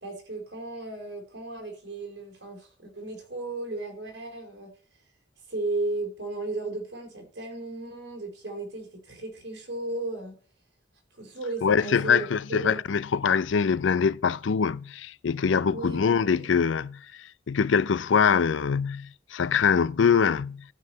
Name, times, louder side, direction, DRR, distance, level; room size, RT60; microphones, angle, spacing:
voice 1, 0.0-4.7 5.5-10.4 11.2-12.8 15.7-16.0 16.3-16.7, right 2 dB, 60° right, 3.8 m, -35 dB
voice 2, 11.6-20.6, left 6 dB, 75° left, 0.5 m, -24 dB
12.5 x 4.8 x 7.3 m
head